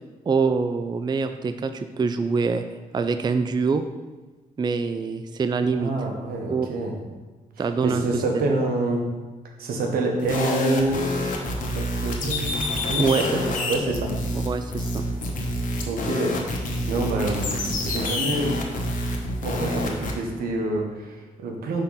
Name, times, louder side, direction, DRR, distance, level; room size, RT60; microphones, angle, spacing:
voice 1, 0.3-2.6 2.9-3.8 4.6-5.9 6.5-6.7 7.6-8.4 13.0-13.2 14.5-15.1, right 5 dB, 30° right, 9 dB, 0.4 m, -24 dB
voice 2, 5.7-7.0 7.6-9.0 9.6-11.1 11.7-12.6 12.8-14.1 15.8-16.4 16.9-17.5 17.8-18.6 19.4-21.8, right 2 dB, 85° right, 2 dB, 1.0 m, -27 dB
sound 1, 10.2-20.1, left 1 dB, 60° left, 1.1 m, -28 dB
5.6 x 3.7 x 5.6 m, 1.2 s
cardioid pair, 65°, 15 cm